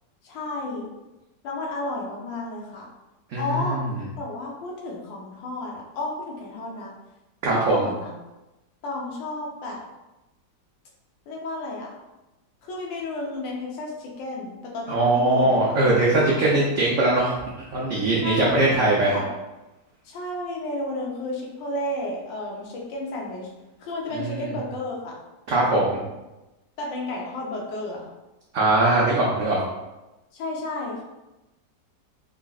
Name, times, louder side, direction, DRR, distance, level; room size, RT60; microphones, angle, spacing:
voice 1, 0.2-0.9 1.4-2.9 3.4-3.8 4.2-6.9 7.5-8.1 8.8-9.8 11.3-11.9 12.6-15.7 16.3-16.4 18.2-19.3 20.0-23.5 23.8-25.1 26.8-28.0 30.3-31.0, left 2 dB, 75° left, -2 dB, 1.4 m, -32 dB
voice 2, 3.3-3.9 7.4-7.9 14.9-17.4 17.7-19.1 24.1-24.5 25.5-26.0 28.5-29.6, right 2 dB, 75° right, -4 dB, 0.7 m, -21 dB
3.7 x 3.2 x 2.3 m, 1.0 s
omnidirectional pair, 2.0 m